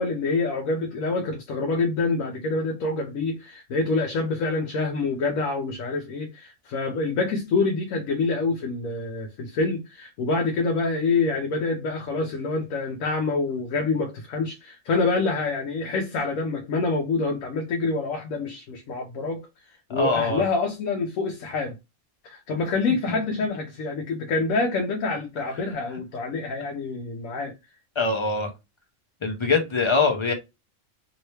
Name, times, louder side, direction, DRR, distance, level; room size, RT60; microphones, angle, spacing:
voice 1, 0.0-19.5 19.9-21.8 22.2-27.5, left 3 dB, 85° left, 1.0 m, -26 dB
voice 2, 19.9-20.4 23.1-23.2 28.0-28.5 29.2-30.3, left 4 dB, 35° left, 0.5 m, -23 dB
2.9 x 2.7 x 3.0 m
omnidirectional pair, 1.4 m